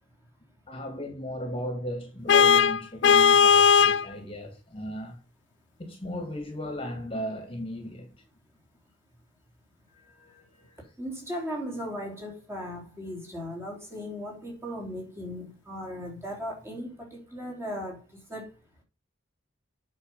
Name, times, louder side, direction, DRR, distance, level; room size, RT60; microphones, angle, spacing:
voice 1, 0.7-5.2 5.8-8.1 9.9-10.8, left 1 dB, 25° left, 1.9 m, -36 dB
Vehicle horn car horn honking, 2.3-4.1, left 7 dB, 60° left, 0.3 m, -18 dB
voice 2, 11.0-18.5, equal, 15° right, 3.5 m, -37 dB
8.3 x 6.2 x 5.5 m
head